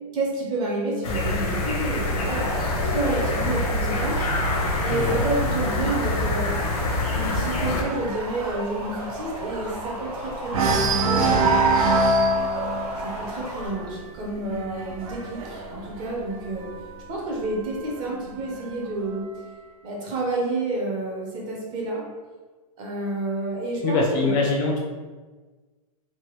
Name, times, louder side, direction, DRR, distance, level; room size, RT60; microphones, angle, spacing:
voice 1, 0.1-6.5 7.1-11.7 13.0-16.7 17.1-19.3 19.8-22.0 22.8-24.4, right 2 dB, 25° right, -2 dB, 0.5 m, -29 dB
sound 1, 1.0-7.8, left 2 dB, 80° left, 0.7 m, -26 dB
sound 2, 2.1-5.3 5.7-6.1 6.3-6.4 6.8-10.1 10.5-17.0 17.9-18.9, right 2 dB, 65° right, 0.5 m, -26 dB
sound 3, 2.3-13.7, right 1 dB, 85° right, 1.1 m, -35 dB
voice 2, 4.9-5.2 23.8-24.8, left 3 dB, 30° left, 0 dB, 0.4 m, -23 dB
3.3 x 2.1 x 3.0 m, 1.3 s
hypercardioid pair, 155°, 19 cm